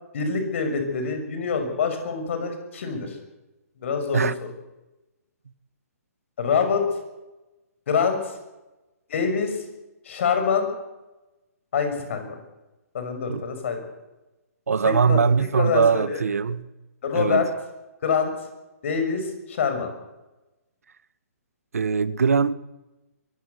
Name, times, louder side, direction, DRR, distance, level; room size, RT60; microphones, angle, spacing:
voice 1, 0.1-3.2 3.8-4.3 6.4-6.8 7.9-8.4 9.1-9.6 10.0-10.7 11.7-12.2 12.9-13.9 14.8-15.2 15.5-16.2 17.0-17.5 18.0-18.3 18.8-19.9, left 5 dB, 50° left, 6.2 m, -25 dB
voice 2, 14.7-16.7 17.1-17.4 21.7-22.5, right 5 dB, 70° right, 1.2 m, -21 dB
23.0 x 15.5 x 8.1 m
figure-of-eight pair, 130°, 8 cm